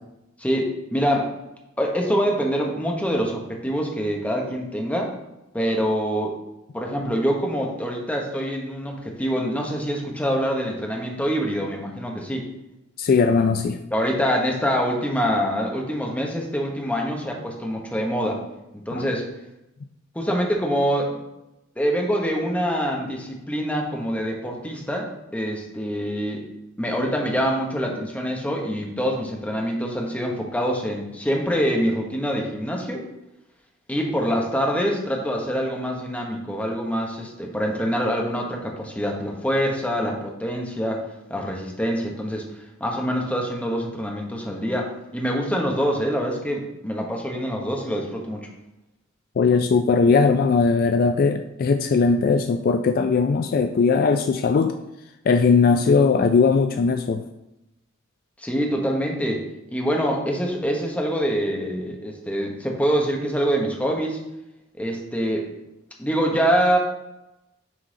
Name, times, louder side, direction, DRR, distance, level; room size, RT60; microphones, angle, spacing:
voice 1, 0.4-1.3 1.8-5.1 5.5-6.3 6.7-12.4 13.9-18.4 18.9-19.2 20.1-21.2 21.8-26.4 26.8-33.0 33.9-41.0 41.3-48.5 58.4-59.4 59.7-64.2 64.8-65.5 66.0-66.8, equal, 5° left, 0 dB, 1.0 m, -25 dB
voice 2, 13.0-13.8 18.9-19.1 49.4-54.8 55.3-57.2, left 4 dB, 45° left, 7 dB, 0.3 m, -19 dB
6.3 x 3.9 x 5.0 m, 0.92 s
head